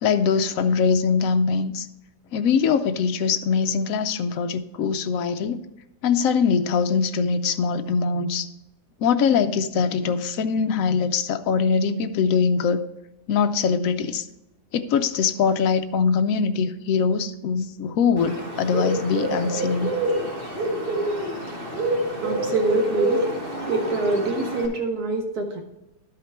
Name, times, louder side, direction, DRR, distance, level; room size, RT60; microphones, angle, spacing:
voice 1, 0.0-1.9 2.3-5.6 6.0-8.5 9.0-12.8 13.3-14.2 14.7-19.9, left 6 dB, 65° left, 9 dB, 0.9 m, -22 dB
Bird, 18.2-24.7, right 1 dB, 35° right, 1.7 m, -27 dB
voice 2, 22.2-23.3 23.7-25.6, right 2 dB, 65° right, 4 dB, 1.4 m, -25 dB
12.0 x 5.0 x 4.4 m, 0.92 s
omnidirectional pair, 1.8 m